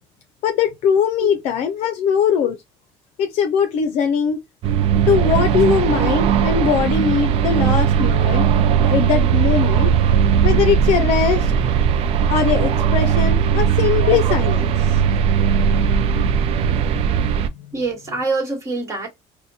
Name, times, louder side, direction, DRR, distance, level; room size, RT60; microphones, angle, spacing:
voice 1, 0.4-2.6 3.2-4.4 5.1-8.5 8.8-9.9 10.4-11.5 12.3-15.0, left 7 dB, 60° left, 0.5 m, -20 dB
sound 1, 4.6-17.5, right 7 dB, 55° right, 0.4 m, -18 dB
voice 2, 17.7-19.1, right 3 dB, 25° right, 1.4 m, -25 dB
4.1 x 2.2 x 2.7 m
cardioid pair, 150°, 12 cm